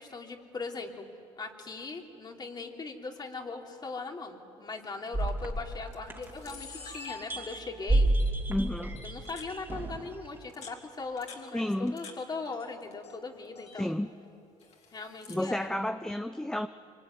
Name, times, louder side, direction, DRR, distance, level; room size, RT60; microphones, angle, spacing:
voice 1, 0.0-8.1 9.0-14.0 14.9-15.8, left 4 dB, 35° left, 2 dB, 3.2 m, -40 dB
Camera, 5.1-5.3 5.9-6.0 6.2-7.8 8.2-8.3 9.0-9.5 10.3-12.2 12.5-13.2 13.4-13.8 14.6-15.5, left 4 dB, 60° left, 4.1 m, -47 dB
sound 1, 5.1-6.7 7.1-10.1, right 1 dB, 15° right, 2.9 m, -30 dB
voice 2, 8.5-9.0 11.5-12.0 13.8-14.1 15.3-16.7, left 1 dB, 5° left, 9 dB, 0.7 m, -31 dB
24.5 x 24.5 x 9.6 m, 2.8 s
cardioid pair, 95°, 13 cm